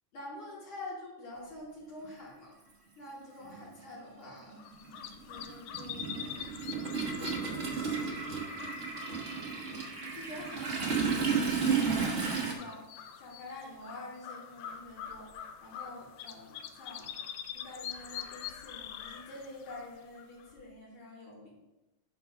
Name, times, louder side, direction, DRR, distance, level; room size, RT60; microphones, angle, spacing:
voice 1, 0.1-2.6 3.0-4.6 5.2-6.3 7.1-8.3 10.1-11.0 11.3-15.3 15.6-17.1 17.5-21.5, left 2 dB, 45° left, -6 dB, 3.1 m, -47 dB
Toilet flush, 2.0-2.1 3.4-3.6 3.9-12.5, right 5 dB, 80° right, 0.6 m, -33 dB
sound 1, 4.6-20.6, left 9 dB, 85° left, 1.5 m, -45 dB
10.0 x 3.6 x 5.4 m, 1.0 s
omnidirectional pair, 3.5 m